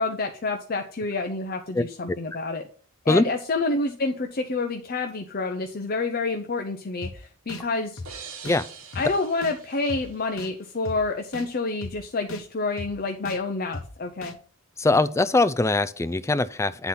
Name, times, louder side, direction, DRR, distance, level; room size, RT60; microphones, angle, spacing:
voice 1, 0.0-2.6 3.0-8.0 9.0-14.3, left 3 dB, 45° left, 0.7 m, -28 dB
voice 2, 1.7-2.2 3.1-3.2 8.4-8.7 14.8-16.9, left 2 dB, 15° left, 0.3 m, -22 dB
sound 1, 7.0-7.1 7.5-7.6 8.0-8.1 8.4-8.6 8.9-9.1 9.4-9.5 9.9-10.0 10.4-10.5 10.9-11.0 11.3-11.5 11.8-11.9 12.3-12.4 12.8-12.9 13.3-13.4 13.7-13.9 14.2-14.3, left 2 dB, 65° left, 1.1 m, -36 dB
sound 2, 8.0-10.8, right 6 dB, 85° right, 1.5 m, -44 dB
10.0 x 4.1 x 5.7 m
head